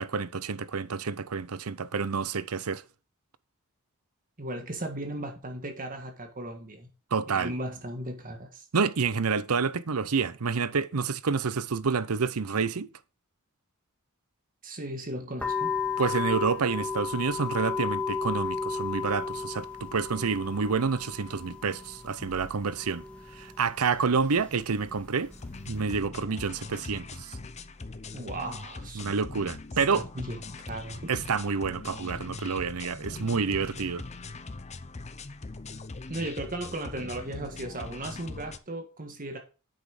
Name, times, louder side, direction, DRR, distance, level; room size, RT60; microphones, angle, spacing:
voice 1, 0.0-2.8 7.1-7.5 8.7-12.9 16.0-23.0 23.3-25.3 25.7-27.4 28.9-30.1 31.1-34.0, right 5 dB, 85° right, 0.7 m, -28 dB
voice 2, 4.4-6.9 7.3-8.7 14.6-15.7 28.1-29.0 29.9-31.1 36.1-39.4, right 1 dB, 40° right, 1.7 m, -36 dB
sound 1, 15.4-26.0, left 5 dB, 5° left, 1.9 m, -35 dB
sound 2, 25.3-38.6, left 3 dB, 30° left, 0.7 m, -41 dB
8.7 x 6.3 x 5.0 m
head